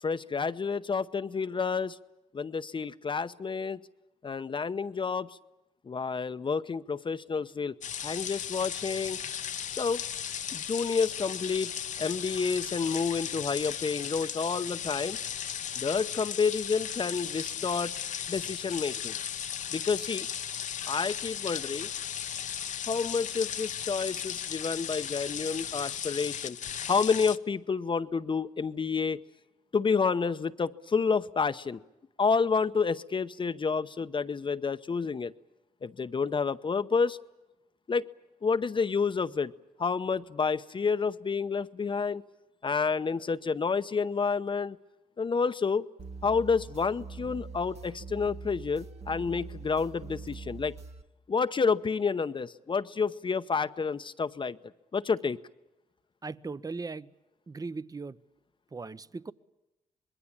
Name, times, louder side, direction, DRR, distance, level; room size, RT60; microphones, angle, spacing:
voice 1, 0.0-2.0 2.3-3.8 4.2-5.4 5.8-7.7 8.0-9.2 9.7-10.0 10.5-11.7 12.0-15.2 15.8-17.9 18.3-19.1 19.7-20.3 20.9-21.9 22.9-26.6 26.9-29.2 29.7-31.8 32.2-35.3 35.8-37.2 37.9-38.1 38.4-39.5 39.8-42.2 42.6-44.8 45.2-45.9 46.2-50.7 51.3-54.6 54.9-55.4, left 5 dB, 40° left, 10 dB, 0.8 m, -29 dB
sound 1, 7.8-27.4, left 9 dB, 65° left, 0.9 m, -36 dB
sound 2, 46.0-51.0, right 4 dB, 50° right, 1.6 m, -43 dB
voice 2, 56.2-57.1 57.5-58.2 58.7-59.3, right 4 dB, 30° right, 16 dB, 0.9 m, -38 dB
26.0 x 21.0 x 8.8 m, 0.97 s
cardioid pair, 65°, 13 cm